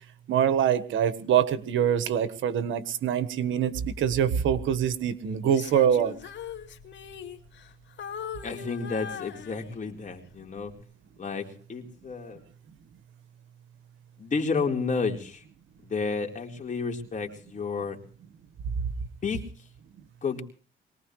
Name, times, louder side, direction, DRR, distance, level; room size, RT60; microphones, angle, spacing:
voice 1, 0.3-6.1, right 9 dB, 75° right, 13 dB, 1.5 m, -24 dB
Female singing, 5.4-7.7 8.0-10.0 10.6-10.8, left 8 dB, 65° left, 2.5 m, -40 dB
voice 2, 8.4-10.7 11.2-12.4 14.2-15.4 15.8-18.0 19.2-19.4 20.2-20.4, left 4 dB, 40° left, 2 dB, 4.0 m, -31 dB
23.0 x 19.0 x 3.2 m, 0.43 s
cardioid pair, 90°, 20 cm